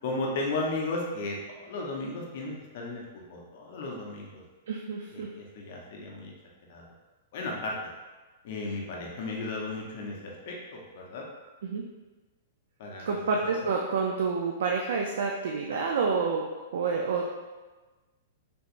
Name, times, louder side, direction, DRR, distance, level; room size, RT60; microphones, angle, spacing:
voice 1, 0.0-4.4 5.1-6.3 6.7-6.8 7.3-7.8 8.4-11.2 12.8-13.6, left 2 dB, 45° left, -1 dB, 0.6 m, -35 dB
voice 2, 4.7-5.3 11.6-11.8 13.0-16.4 16.7-17.3, right 4 dB, 65° right, 0 dB, 0.3 m, -28 dB
3.4 x 2.9 x 2.5 m, 1.2 s
supercardioid pair, 175°, 0 cm